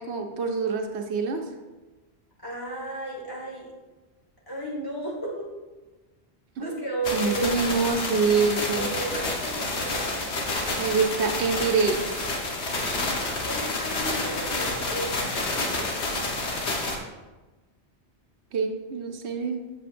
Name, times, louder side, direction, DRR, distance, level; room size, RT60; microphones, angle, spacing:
voice 1, 0.0-1.4 6.6-6.7 7.1-8.9 10.8-12.3 18.5-19.6, right 5 dB, 80° right, 4 dB, 1.0 m, -26 dB
voice 2, 2.4-3.7 4.5-5.5 6.6-7.7 8.6-10.3 13.2-15.9, right 2 dB, 20° left, -5 dB, 1.7 m, -34 dB
sound 1, 7.0-17.0, left 2 dB, 80° left, 1.3 m, -29 dB
7.7 x 6.9 x 2.5 m, 1.2 s
omnidirectional pair, 1.1 m